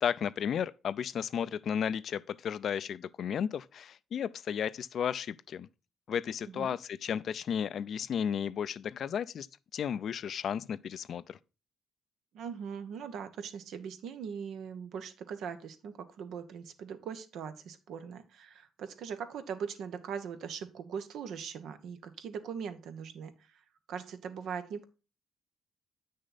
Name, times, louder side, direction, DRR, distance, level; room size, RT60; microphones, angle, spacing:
voice 1, 0.0-5.7 6.1-9.5 9.7-11.4, left 8 dB, 60° left, 0.5 m, -33 dB
voice 2, 12.3-23.6 23.9-24.8, right 7 dB, 75° right, 1.2 m, -41 dB
9.0 x 6.5 x 4.1 m
cardioid pair, 90°, 0 cm